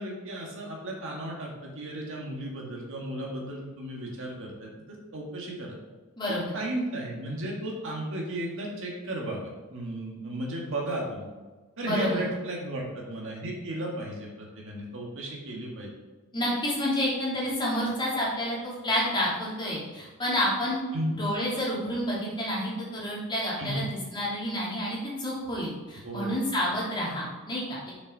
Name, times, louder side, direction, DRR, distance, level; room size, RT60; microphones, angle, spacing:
voice 1, 0.0-5.8 6.3-11.3 11.8-15.9 20.9-21.2 23.6-23.8 26.0-26.7, right 1 dB, 60° right, -2 dB, 1.9 m, -34 dB
voice 2, 6.2-6.6 11.8-12.2 16.3-20.8 21.2-27.9, equal, 20° left, -7 dB, 2.9 m, -29 dB
6.6 x 6.4 x 5.4 m, 1.3 s
head